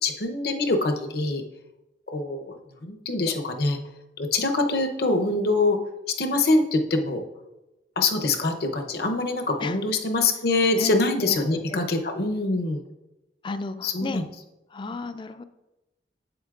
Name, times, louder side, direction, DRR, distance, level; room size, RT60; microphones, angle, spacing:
voice 1, 0.0-1.4 2.1-2.6 2.8-3.8 4.2-5.8 6.1-7.2 8.0-12.8 13.8-14.2 14.8-14.9, left 2 dB, 60° left, 5 dB, 0.8 m, -24 dB
voice 2, 11.2-11.9 13.4-14.2 14.7-15.4, left 3 dB, 25° left, 12 dB, 0.3 m, -33 dB
8.2 x 7.9 x 2.4 m, 0.99 s
head